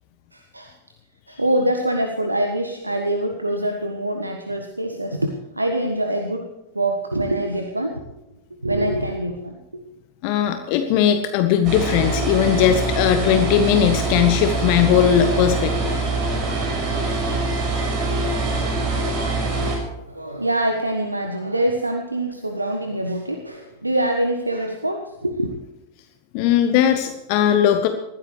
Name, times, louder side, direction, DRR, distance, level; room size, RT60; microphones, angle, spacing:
voice 1, 0.3-0.8 1.3-6.5 6.7-8.0 8.6-9.6 20.1-25.5, right 1 dB, 85° right, 4 dB, 1.4 m, -24 dB
voice 2, 10.2-15.9 26.3-27.9, left 9 dB, 45° left, 8 dB, 1.1 m, -18 dB
sound 1, 11.6-19.8, right 2 dB, 40° right, 6.3 m, -24 dB
21.0 x 14.5 x 3.3 m, 0.99 s
figure-of-eight pair, 90°, 0 cm